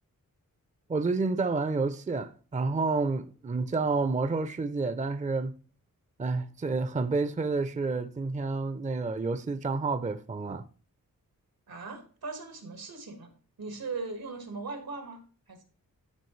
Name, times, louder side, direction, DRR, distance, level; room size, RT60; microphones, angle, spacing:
voice 1, 0.9-5.5 6.2-10.6, right 3 dB, 20° right, 0.5 m, -29 dB
voice 2, 11.7-13.3 13.6-15.2 15.5-15.6, right 4 dB, 85° right, 1.9 m, -39 dB
12.5 x 4.9 x 3.2 m
wide cardioid pair, 70°, 35 cm